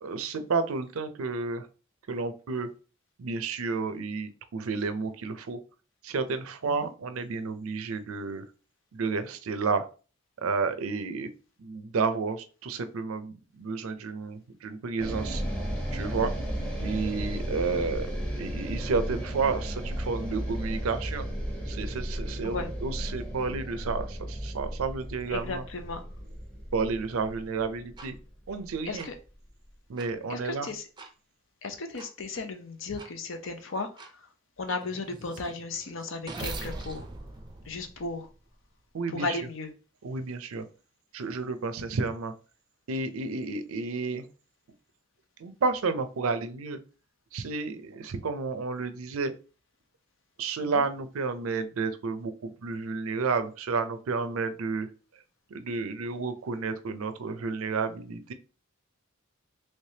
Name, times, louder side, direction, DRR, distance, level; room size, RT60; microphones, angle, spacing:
voice 1, 0.0-1.7 2.1-2.7 3.2-5.6 6.0-8.5 8.9-9.8 10.4-11.3 11.6-15.4 15.9-16.3 16.8-18.1 18.4-21.3 21.7-25.6 26.7-28.1 28.5-29.1 29.9-30.7 38.9-39.4 40.0-40.7 41.1-42.3 42.9-44.3 45.4-46.8 47.3-49.3 50.4-55.2 55.5-58.3, right 4 dB, 85° right, 10 dB, 0.5 m, -31 dB
sound 1, 15.0-29.3, equal, 5° left, 0.8 m, -34 dB
voice 2, 25.3-26.0 28.9-29.1 30.3-30.8 31.6-33.9 34.6-37.0 37.7-38.3 39.1-39.7 50.7-50.8, left 3 dB, 65° left, 6 dB, 0.6 m, -35 dB
sound 2, 28.0-28.1 29.0-29.1 30.0-30.1 31.0-31.1 32.0-32.1 33.0-33.1 34.0-34.1 34.7-38.5, right 2 dB, 20° right, 0.5 m, -41 dB
3.3 x 3.2 x 2.7 m, 0.35 s
head